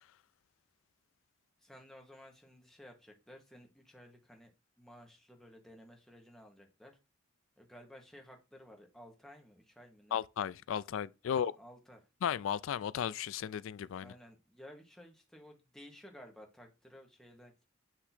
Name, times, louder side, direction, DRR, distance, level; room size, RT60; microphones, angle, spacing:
voice 1, 1.6-4.5 4.8-7.0 7.6-10.2 11.2-12.1 14.0-17.5, equal, ahead, 1.1 m, -55 dB
voice 2, 10.1-11.5 12.2-14.1, left 8 dB, 70° left, 0.3 m, -35 dB
7.9 x 2.9 x 4.2 m
head